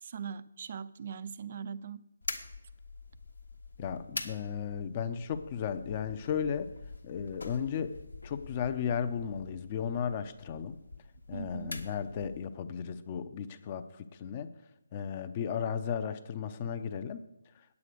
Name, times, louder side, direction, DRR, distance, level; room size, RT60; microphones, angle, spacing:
voice 1, 0.0-2.1 11.3-11.8, right 7 dB, 45° right, 16 dB, 0.5 m, -41 dB
sound 1, 2.2-12.5, left 3 dB, 85° left, 1.3 m, -45 dB
voice 2, 3.8-6.7 7.0-8.0 8.2-10.8 11.3-14.5 14.9-17.2, left 7 dB, 30° left, 11 dB, 0.6 m, -35 dB
9.0 x 8.4 x 6.4 m, 0.91 s
figure-of-eight pair, 150°, 0 cm